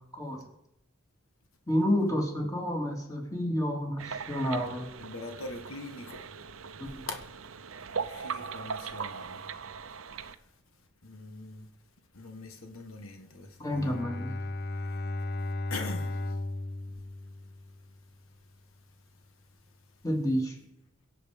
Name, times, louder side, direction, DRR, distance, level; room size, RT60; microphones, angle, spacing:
voice 1, 1.7-4.9 6.8-7.1 13.6-14.3 20.0-20.6, equal, 15° left, 3.0 m, -30 dB
sound 1, 4.0-10.4, right 5 dB, 75° right, 0.8 m, -39 dB
voice 2, 5.0-6.2 7.1-7.2 8.0-9.4 11.0-11.7 12.1-13.9 15.7-16.2, left 2 dB, 90° left, 1.6 m, -42 dB
Bowed string instrument, 13.7-18.0, left 2 dB, 50° left, 0.8 m, -35 dB
23.0 x 7.8 x 5.3 m
head